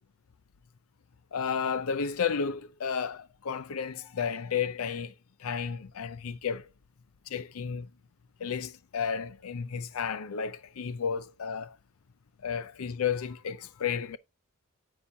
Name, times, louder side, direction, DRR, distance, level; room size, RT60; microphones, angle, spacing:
voice 1, 1.3-5.1 5.4-6.7 7.3-7.9 8.4-11.8 12.4-14.2, left 6 dB, 85° left, 0.5 m, -32 dB
9.7 x 7.2 x 2.7 m
head